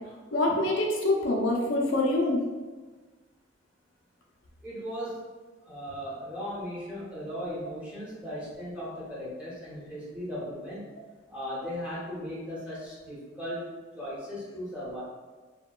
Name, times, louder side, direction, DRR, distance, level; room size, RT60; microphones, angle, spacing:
voice 1, 0.3-2.4, left 2 dB, 70° left, -2 dB, 0.4 m, -25 dB
voice 2, 4.6-5.2 5.6-10.8 11.3-13.7 13.9-15.0, equal, 5° right, -8 dB, 0.7 m, -37 dB
2.8 x 2.1 x 2.2 m, 1.4 s
head